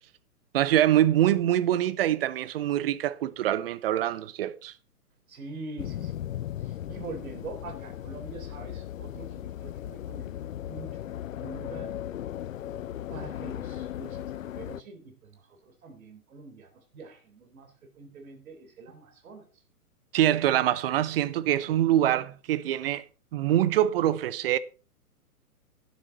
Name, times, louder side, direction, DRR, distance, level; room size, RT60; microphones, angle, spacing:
voice 1, 0.5-4.7 20.1-23.0 23.3-24.6, right 12 dB, 40° right, 0.8 m, -24 dB
voice 2, 5.3-6.2 6.6-11.1 11.4-12.0 13.1-19.5, right 3 dB, 60° right, 4.0 m, -44 dB
sound 1, 5.8-14.8, left 11 dB, 60° left, 0.6 m, -37 dB
12.0 x 9.7 x 4.0 m
figure-of-eight pair, 125°, 46 cm